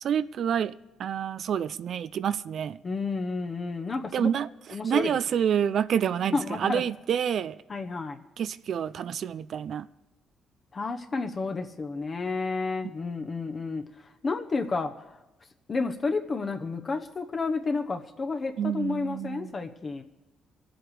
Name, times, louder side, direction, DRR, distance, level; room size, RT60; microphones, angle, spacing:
voice 1, 0.0-0.7 1.0-2.8 4.1-4.5 4.8-7.6 8.4-9.9 18.6-19.5, right 8 dB, 65° right, 0.4 m, -28 dB
voice 2, 2.8-4.3 4.7-5.2 6.3-6.8 7.7-8.2 10.7-15.2 15.7-20.0, left 3 dB, 35° left, 0.9 m, -31 dB
22.0 x 7.9 x 4.9 m
cardioid pair, 90°, 0 cm